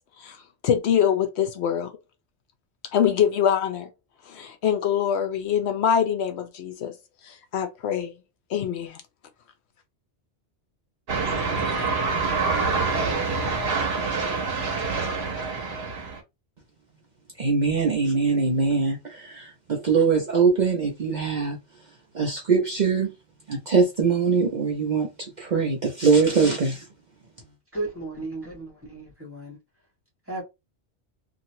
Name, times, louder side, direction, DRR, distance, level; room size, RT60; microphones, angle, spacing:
voice 1, 0.6-2.0 2.9-3.9 4.3-6.9 7.2-8.1 8.5-9.0, left 8 dB, 75° left, 0.8 m, -24 dB
sound 1, 11.1-16.2, right 4 dB, 65° right, 1.1 m, -26 dB
voice 2, 17.4-21.6 22.1-23.1 23.5-26.9, right 5 dB, 45° right, 0.7 m, -22 dB
voice 3, 27.7-29.6 30.3-30.4, right 2 dB, 10° right, 1.4 m, -34 dB
2.9 x 2.5 x 2.7 m
omnidirectional pair, 1.2 m